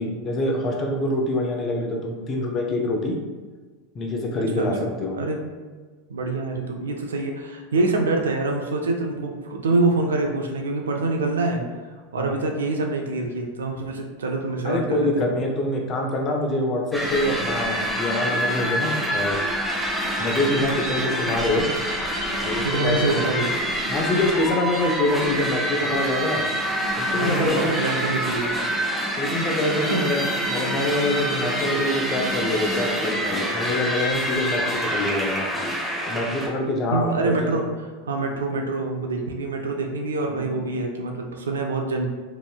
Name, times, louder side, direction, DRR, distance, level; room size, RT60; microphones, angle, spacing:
voice 1, 0.0-3.2 3.9-4.7 5.0-5.2 12.2-12.3 14.6-19.4 20.2-21.7 22.4-23.2 23.9-26.4 27.0-27.8 29.2-35.5 36.1-37.6 40.3-40.5, left 1 dB, 35° left, 1 dB, 0.6 m, -25 dB
voice 2, 4.6-5.4 6.1-11.7 12.1-15.3 22.6-23.5 25.8-25.9 27.1-28.5 29.9-30.1 36.9-37.6 38.1-42.1, right 3 dB, 80° right, 2 dB, 0.4 m, -25 dB
sound 1, 16.9-36.5, equal, ahead, 1.0 m, -26 dB
3.0 x 2.6 x 2.2 m, 1.4 s
hypercardioid pair, 90°, 0 cm